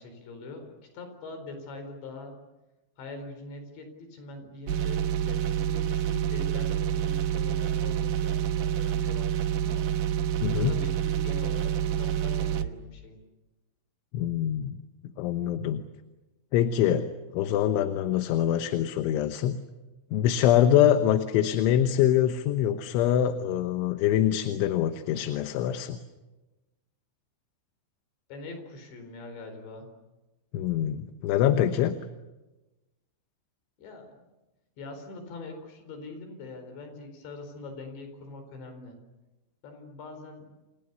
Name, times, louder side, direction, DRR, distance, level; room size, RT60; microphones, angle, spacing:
voice 1, 0.0-2.3 3.0-9.9 10.6-13.2 28.3-29.9 33.8-34.2 34.8-39.0 39.6-40.6, left 3 dB, 70° left, 6 dB, 6.5 m, -43 dB
sound 1, 4.7-12.7, right 10 dB, 70° right, 2.3 m, -28 dB
voice 2, 10.4-10.8 14.1-14.8 15.2-15.8 16.5-17.1 17.3-19.6 20.1-26.0 30.5-32.0, left 11 dB, 85° left, 8 dB, 3.5 m, -24 dB
29.0 x 28.5 x 6.9 m, 1.1 s
omnidirectional pair, 5.4 m